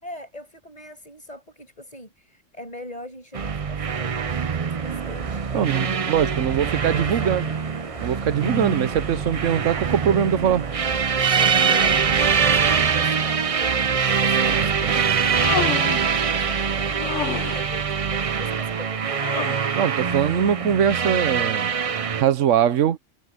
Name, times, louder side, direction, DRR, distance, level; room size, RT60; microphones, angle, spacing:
voice 1, 0.0-7.5 11.3-19.7, left 1 dB, 30° left, 6.4 m, -41 dB
sound 1, 3.3-22.2, right 6 dB, 40° right, 0.5 m, -23 dB
sound 2, 4.8-17.6, left 2 dB, 60° left, 6.5 m, -42 dB
voice 2, 5.5-7.4 8.0-10.7 14.5-15.0 19.8-21.7 22.1-23.0, right 9 dB, 80° right, 1.2 m, -22 dB
Human voice, 15.1-16.2 17.0-17.7 19.2-19.9, left 13 dB, 80° left, 0.9 m, -30 dB
omnidirectional pair, 1.3 m